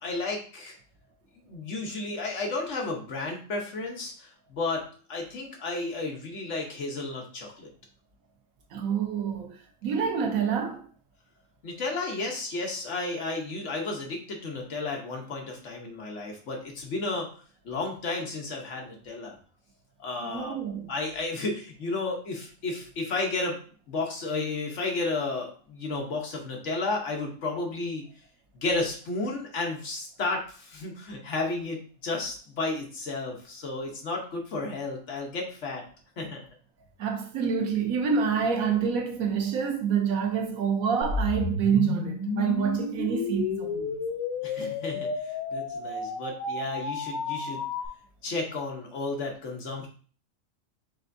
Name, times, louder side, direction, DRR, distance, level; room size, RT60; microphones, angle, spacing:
voice 1, 0.0-0.8 1.5-4.8 5.1-7.7 11.6-17.3 17.6-19.4 20.0-20.6 20.9-23.6 23.9-28.0 28.5-35.8 36.2-36.5 44.4-47.6 48.2-49.9, left 3 dB, 60° left, 1.2 m, -32 dB
voice 2, 8.7-9.5 9.8-10.8 20.2-20.9 37.0-44.0, right 7 dB, 90° right, 1.2 m, -27 dB
sound 1, 41.0-47.9, left 4 dB, 85° left, 1.2 m, -32 dB
5.4 x 3.4 x 2.6 m
omnidirectional pair, 1.4 m